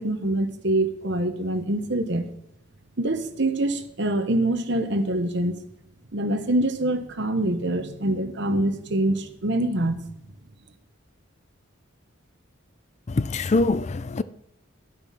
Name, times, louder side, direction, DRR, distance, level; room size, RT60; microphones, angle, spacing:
voice 1, 0.0-2.3 3.0-5.6 6.1-10.0, right 1 dB, 60° right, 1.1 m, -25 dB
voice 2, 13.1-14.2, left 3 dB, 35° left, 0.4 m, -23 dB
12.0 x 7.9 x 5.8 m
head